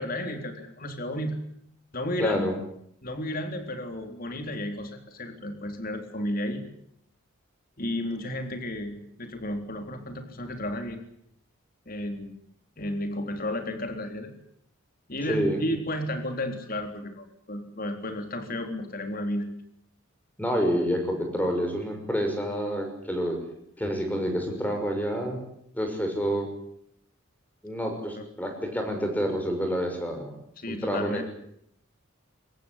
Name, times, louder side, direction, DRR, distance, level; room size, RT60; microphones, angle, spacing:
voice 1, 0.0-1.4 1.9-2.5 3.0-6.6 7.8-11.0 11.9-12.3 12.8-14.3 15.1-19.5 28.1-28.3 30.6-31.2, left 1 dB, 40° left, 5 dB, 3.7 m, -32 dB
voice 2, 2.2-2.5 15.3-15.6 20.4-23.4 23.8-25.4 25.7-26.5 27.6-30.3 30.7-31.2, equal, 10° left, 4 dB, 6.1 m, -28 dB
24.0 x 19.5 x 10.0 m, 0.71 s
head